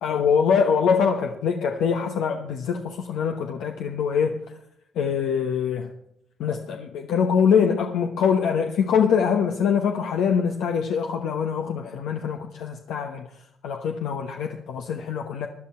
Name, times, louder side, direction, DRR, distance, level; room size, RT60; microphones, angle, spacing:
voice 1, 0.0-4.4 4.9-5.9 6.4-13.2 13.6-15.5, left 7 dB, 85° left, 1.1 m, -23 dB
17.0 x 10.5 x 4.4 m
cardioid pair, 90°, 0 cm